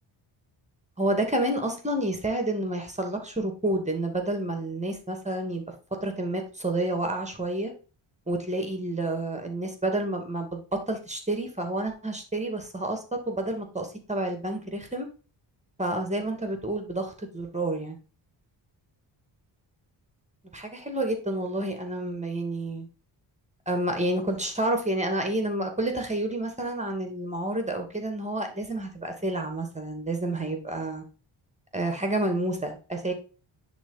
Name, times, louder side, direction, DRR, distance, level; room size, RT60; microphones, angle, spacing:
voice 1, 1.0-5.6 6.0-7.7 8.3-15.1 15.8-18.0 20.5-22.9 23.7-31.0 31.7-33.1, right 1 dB, 15° right, 4 dB, 2.4 m, -29 dB
10.0 x 4.1 x 4.0 m, 0.35 s
cardioid pair, 70°, 49 cm